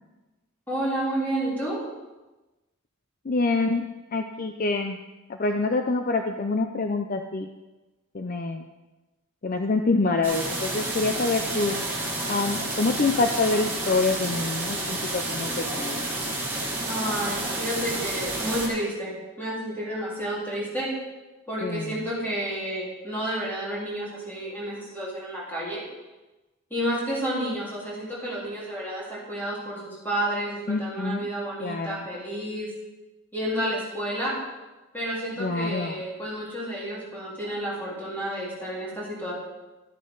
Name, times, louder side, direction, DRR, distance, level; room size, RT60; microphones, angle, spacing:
voice 1, 0.7-1.8 16.8-20.9 21.5-25.8 26.7-32.7 33.3-34.4 34.9-39.3, right 1 dB, 10° left, -7 dB, 3.7 m, -30 dB
voice 2, 3.2-5.0 5.3-7.5 8.1-8.7 9.4-11.8 12.2-16.1 21.6-22.1 30.7-31.3 31.6-32.1 35.4-36.0, left 3 dB, 40° left, 5 dB, 0.5 m, -26 dB
sound 1, 10.2-18.7, right 2 dB, 10° right, 3.3 m, -30 dB
12.0 x 10.0 x 3.9 m, 1.1 s
head